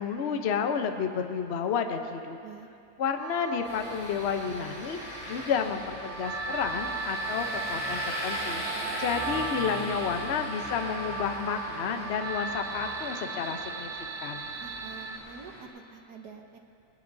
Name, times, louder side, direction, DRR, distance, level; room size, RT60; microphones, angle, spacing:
voice 1, 0.0-2.4 3.0-13.9 14.2-14.5, left 6 dB, 55° left, 6 dB, 0.7 m, -31 dB
sound 1, 3.2-15.2, right 4 dB, 75° right, 1.5 m, -37 dB
sound 2, 3.6-15.6, left 1 dB, 15° left, 3.3 m, -39 dB
voice 2, 14.6-16.6, right 6 dB, 60° right, 4 dB, 1.4 m, -47 dB
21.0 x 19.0 x 2.7 m, 2.6 s
omnidirectional pair, 2.1 m